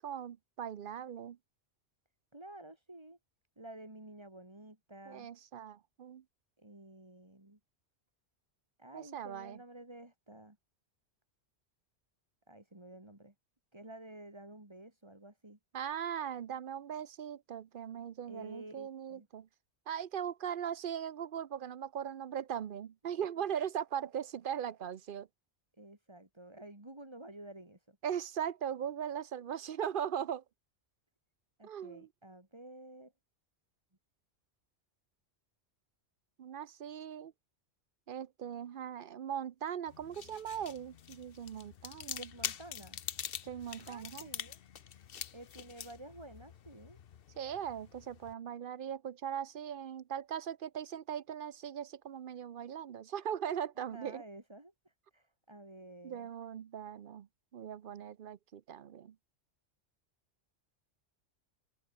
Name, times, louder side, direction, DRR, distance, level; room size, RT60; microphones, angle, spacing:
voice 1, 0.0-1.4 5.1-6.2 8.9-9.6 15.7-19.5 19.9-25.3 28.0-30.4 31.6-32.1 36.4-37.3 38.1-42.3 43.4-44.3 47.4-54.2 56.0-57.3 57.5-59.1, right 9 dB, 55° right, 0.8 m, -39 dB
voice 2, 2.3-3.2 3.6-5.3 6.6-7.6 8.8-10.6 12.5-13.3 13.7-15.6 18.3-19.3 25.8-28.0 31.6-33.1 42.2-43.0 43.9-44.6 45.3-47.0 53.8-56.3, right 1 dB, 25° right, 3.0 m, -51 dB
sound 1, 39.9-48.3, left 9 dB, 60° left, 0.9 m, -45 dB
open air
omnidirectional pair, 1.2 m